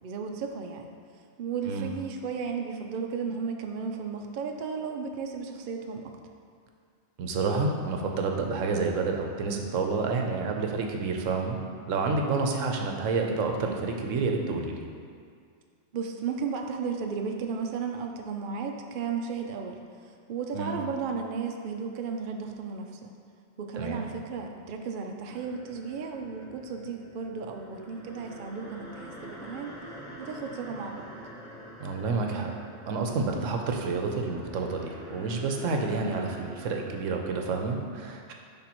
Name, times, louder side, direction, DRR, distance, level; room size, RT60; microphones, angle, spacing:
voice 1, 0.0-0.9 1.4-6.1 15.9-19.8 20.3-23.1 23.6-29.8 30.2-31.1, right 5 dB, 60° right, 3 dB, 0.5 m, -34 dB
voice 2, 7.2-11.6 11.9-14.9 20.5-20.8 23.8-24.0 31.8-32.5 32.8-38.3, right 4 dB, 80° right, 2 dB, 1.0 m, -29 dB
sound 1, 25.3-37.1, equal, 85° left, 1.5 m, -46 dB
10.0 x 3.5 x 3.0 m, 2.2 s
omnidirectional pair, 1.3 m